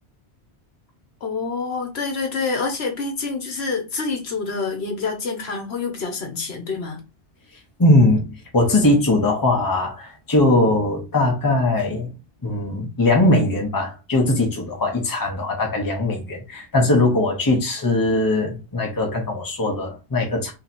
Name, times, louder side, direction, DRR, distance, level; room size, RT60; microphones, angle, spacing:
voice 1, 1.2-7.0, left 4 dB, 65° left, 1.2 m, -27 dB
voice 2, 7.8-12.1 12.4-20.5, left 2 dB, 20° left, 0.9 m, -20 dB
3.2 x 2.8 x 4.1 m
omnidirectional pair, 1.1 m